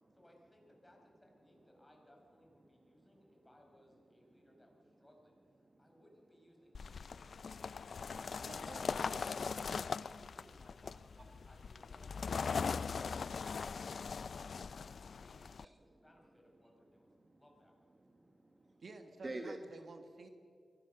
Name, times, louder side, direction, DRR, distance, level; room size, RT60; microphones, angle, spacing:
voice 1, 0.1-5.4 5.8-7.2 10.0-11.1 11.5-13.7 14.0-17.1 17.4-17.7, left 1 dB, 15° left, 0 dB, 5.2 m, -65 dB
voice 2, 2.7-3.4 4.3-4.5 5.6-5.9 7.7-8.2 14.9-15.0 15.6-15.8 17.2-17.4 18.0-18.8 19.2-19.6, right 2 dB, 30° right, 5 dB, 1.3 m, -50 dB
sound 1, 6.7-15.6, left 5 dB, 65° left, 0.4 m, -40 dB
voice 3, 8.4-9.2 18.8-20.3, right 3 dB, 60° right, 7 dB, 1.5 m, -52 dB
23.5 x 17.0 x 6.8 m, 2.4 s
cardioid pair, 75°, 0 cm